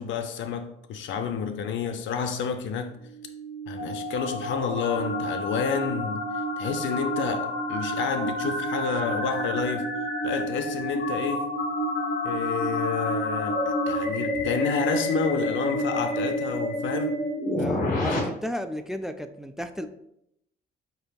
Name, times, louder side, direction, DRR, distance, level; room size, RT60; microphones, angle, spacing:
voice 1, 0.0-3.0 3.7-6.3 6.6-9.9 10.2-11.5 12.2-17.1, left 6 dB, 75° left, 0.5 m, -29 dB
sound 1, 3.1-18.2, equal, 45° left, 1.5 m, -29 dB
voice 2, 17.6-19.9, equal, ahead, 0.3 m, -33 dB
7.7 x 2.6 x 2.3 m
cardioid pair, 90°, 20 cm